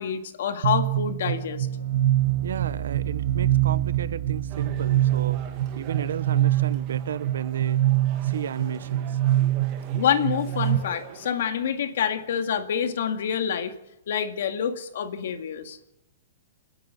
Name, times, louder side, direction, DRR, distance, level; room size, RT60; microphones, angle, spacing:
voice 1, 0.0-1.7 9.9-13.7 14.1-15.8, left 8 dB, 55° left, 2.0 m, -27 dB
sound 1, 0.6-10.8, right 13 dB, 60° right, 1.9 m, -25 dB
voice 2, 2.4-5.4 5.7-7.8 8.2-9.2, right 8 dB, 85° right, 1.1 m, -33 dB
sound 2, 4.5-11.3, right 8 dB, 25° right, 2.0 m, -45 dB
29.5 x 10.5 x 8.4 m
hypercardioid pair, 175°, 0 cm